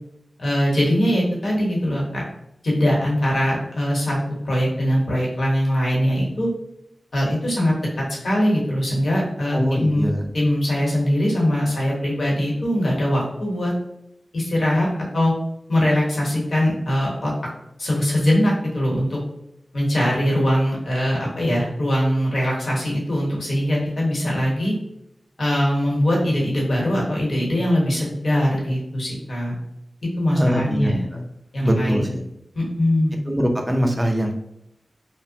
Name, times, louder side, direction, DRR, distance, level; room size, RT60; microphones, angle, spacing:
voice 1, 0.4-2.2 2.6-4.2 4.4-6.5 7.1-10.0 10.3-13.7 14.3-14.9 15.1-15.3 15.7-17.3 17.8-19.2 19.7-24.7 25.4-29.5 30.2-31.0 31.5-32.0 32.5-33.2, equal, 75° left, -3 dB, 1.0 m, -21 dB
voice 2, 9.5-10.3 30.3-31.2 31.6-32.2 33.3-34.3, equal, 20° right, 2 dB, 0.5 m, -22 dB
2.8 x 2.1 x 2.7 m, 0.82 s
wide cardioid pair, 60°, 0 cm